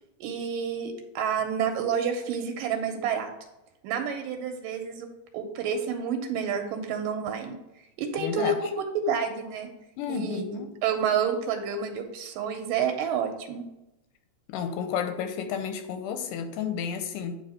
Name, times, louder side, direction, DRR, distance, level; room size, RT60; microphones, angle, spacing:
voice 1, 0.2-3.3 3.8-5.1 5.3-7.5 8.0-9.7 10.1-13.6, right 6 dB, 85° right, 5 dB, 2.3 m, -29 dB
voice 2, 8.2-8.6 10.0-10.7 14.5-17.4, left 7 dB, 90° left, 7 dB, 2.3 m, -31 dB
9.4 x 3.3 x 4.2 m, 0.92 s
omnidirectional pair, 3.8 m